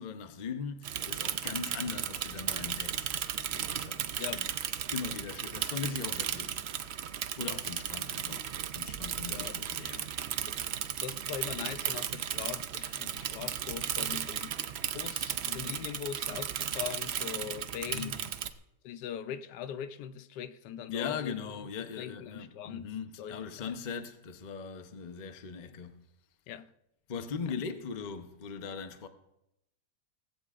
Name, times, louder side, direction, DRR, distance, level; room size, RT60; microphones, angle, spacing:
voice 1, 0.0-3.1 3.5-4.5 4.9-7.1 7.4-8.5 8.7-10.1 17.9-18.3 20.9-26.0 27.1-29.1, left 6 dB, 40° left, 0.7 m, -40 dB
Bicycle / Mechanisms, 0.8-18.5, right 9 dB, 75° right, 0.5 m, -35 dB
voice 2, 4.2-4.5 9.3-9.7 10.5-10.6 11.0-14.6 14.9-18.2 18.8-21.4 21.8-22.9 23.2-23.7 26.5-26.7 27.5-27.6, left 9 dB, 80° left, 1.2 m, -41 dB
18.5 x 15.5 x 2.5 m
omnidirectional pair, 1.8 m